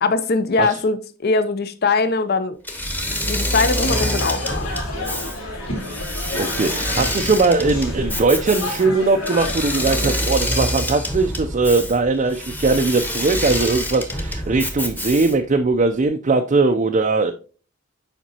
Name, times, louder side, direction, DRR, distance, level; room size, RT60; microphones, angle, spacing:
voice 1, 0.0-2.6 3.3-4.7 5.0-5.2, left 3 dB, 50° left, 0.6 m, -21 dB
Engine / Mechanisms, 2.6-15.5, left 1 dB, 10° left, 1.0 m, -26 dB
sound 1, 3.7-10.2, left 1 dB, 80° left, 2.6 m, -31 dB
voice 2, 6.4-17.3, right 3 dB, 35° right, 0.4 m, -20 dB
7.3 x 5.1 x 2.8 m
head